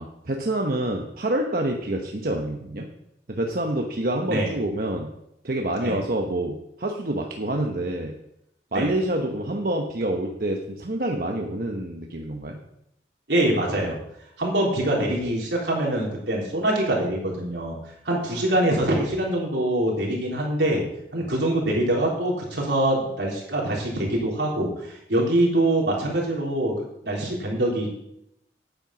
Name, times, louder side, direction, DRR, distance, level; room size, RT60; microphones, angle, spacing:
voice 1, 0.0-2.9 3.3-5.1 5.4-8.1 8.7-12.6, right 1 dB, 55° right, 2 dB, 1.0 m, -27 dB
voice 2, 13.3-14.0 14.4-17.8 18.1-20.8 21.1-27.9, right 1 dB, 80° right, -2 dB, 3.6 m, -24 dB
9.0 x 9.0 x 5.9 m, 0.80 s
head